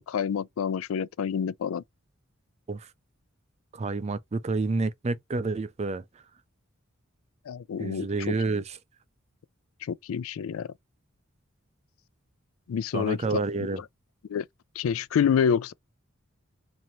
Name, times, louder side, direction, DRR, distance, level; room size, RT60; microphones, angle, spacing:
voice 1, 0.0-1.8 7.5-8.1 9.8-10.7 12.7-13.8 14.3-14.5 14.8-15.7, left 7 dB, 85° left, 0.3 m, -28 dB
voice 2, 3.7-6.0 7.8-8.8 12.9-13.8, right 3 dB, 30° right, 0.4 m, -29 dB
4.2 x 2.6 x 3.0 m
head